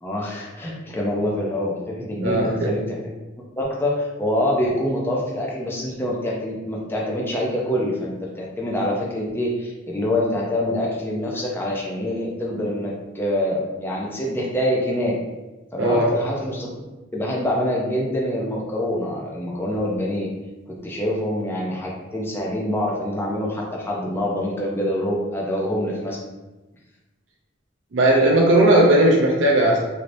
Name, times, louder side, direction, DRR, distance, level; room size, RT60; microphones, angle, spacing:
voice 1, 0.0-3.0 3.6-15.2 15.7-16.7 17.1-20.3 20.7-26.2, left 1 dB, 10° left, -3 dB, 0.4 m, -25 dB
voice 2, 2.2-2.7 15.8-16.1 27.9-29.8, right 1 dB, 65° right, -2 dB, 0.5 m, -17 dB
3.2 x 2.7 x 2.5 m, 1.1 s
head